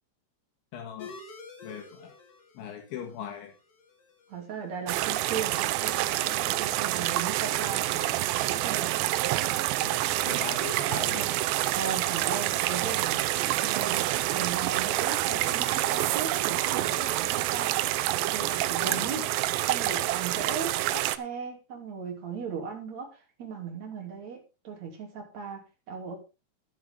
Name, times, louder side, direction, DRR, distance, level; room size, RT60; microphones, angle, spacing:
voice 1, 0.7-1.1 1.6-2.1 2.6-3.5 6.9-7.1 9.8-11.3 18.8-19.1, left 8 dB, 75° left, 3 dB, 3.9 m, -40 dB
sound 1, 1.0-20.1, left 4 dB, 55° left, 4.1 m, -52 dB
voice 2, 4.3-5.7 6.3-8.2 8.5-9.0 11.7-13.3 13.6-17.8 18.2-19.2 19.7-24.4 24.6-26.2, right 6 dB, 40° right, 1 dB, 3.8 m, -37 dB
sound 2, 4.9-21.2, right 15 dB, 80° right, 2.6 m, -27 dB
11.5 x 11.0 x 3.8 m, 0.29 s
omnidirectional pair, 5.4 m